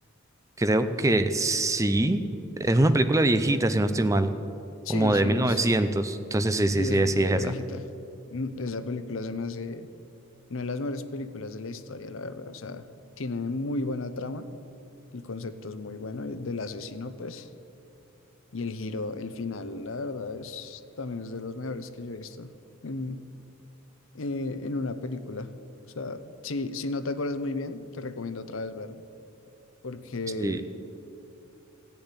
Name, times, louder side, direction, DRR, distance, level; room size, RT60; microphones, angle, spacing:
voice 1, 0.6-2.2 2.6-4.3 4.9-7.5 30.4-30.6, right 1 dB, 15° right, 10 dB, 0.5 m, -23 dB
voice 2, 4.8-5.6 6.8-7.9 8.3-9.9 10.5-12.9 13.2-14.5 15.1-17.5 18.5-22.5 22.8-23.2 24.1-25.5 26.0-29.0 29.8-30.6, left 3 dB, 65° left, 12 dB, 0.7 m, -34 dB
16.0 x 7.0 x 9.8 m, 2.7 s
head